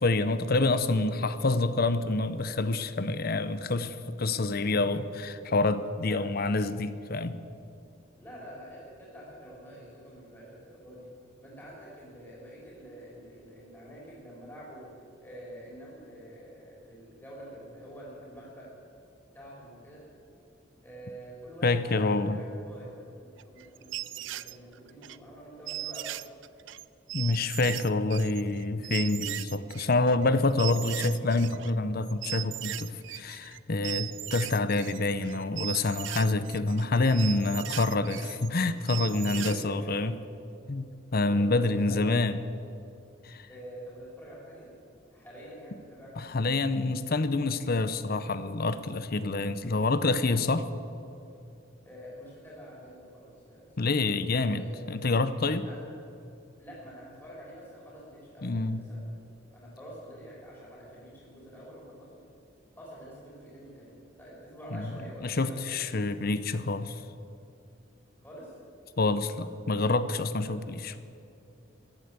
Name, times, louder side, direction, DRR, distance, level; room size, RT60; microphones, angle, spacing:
voice 1, 0.0-7.4 21.6-22.4 27.1-40.1 40.7-42.4 43.2-43.5 46.2-50.7 53.8-55.7 58.4-58.8 64.7-64.9 65.2-67.0 69.0-70.9, left 2 dB, 50° left, 13 dB, 0.7 m, -27 dB
voice 2, 6.0-6.6 8.2-11.1 11.4-18.7 19.3-20.0 20.8-22.9 23.2-26.1 37.4-37.6 39.2-40.1 41.3-42.2 43.5-44.7 45.1-46.2 51.8-53.9 54.5-54.9 55.6-55.8 56.6-59.0 59.5-62.2 62.8-65.6 66.1-66.2 68.2-68.6 69.2-69.3, equal, 10° left, -6 dB, 3.8 m, -47 dB
sound 1, 23.4-25.2 25.7-31.7 32.1-33.6 33.8-39.6, right 15 dB, 65° right, 0.4 m, -38 dB
15.5 x 11.5 x 8.3 m, 2.7 s
head